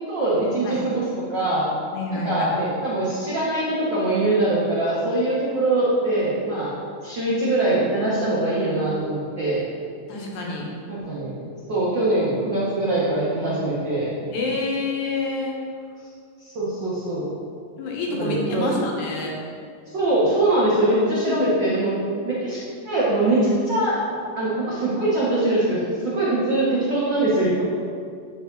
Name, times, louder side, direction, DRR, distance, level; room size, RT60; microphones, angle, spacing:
voice 1, 0.1-1.7 2.1-6.7 7.0-9.6 10.9-14.1 16.4-17.3 18.1-18.7 19.9-21.9 22.2-27.6, right 2 dB, 70° right, -8 dB, 1.0 m, -23 dB
voice 2, 1.9-2.5 10.1-10.7 14.3-15.6 17.8-19.3 21.2-21.6, left 3 dB, 75° left, -1 dB, 2.3 m, -27 dB
8.5 x 4.9 x 3.9 m, 2.3 s
omnidirectional pair, 3.8 m